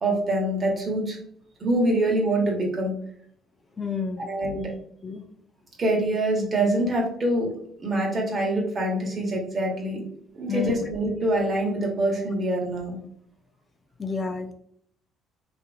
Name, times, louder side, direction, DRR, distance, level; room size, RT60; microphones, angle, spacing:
voice 1, 0.0-1.2 1.6-2.9 4.2-4.6 5.8-7.5 7.8-10.0 10.3-13.0, right 1 dB, 40° right, -1 dB, 1.1 m, -25 dB
voice 2, 3.8-4.2 4.5-4.6 5.0-5.2 10.5-10.8 14.0-14.5, left 5 dB, 35° left, 5 dB, 0.4 m, -30 dB
2.7 x 2.5 x 2.5 m, 0.65 s
hypercardioid pair, 60°, 0 cm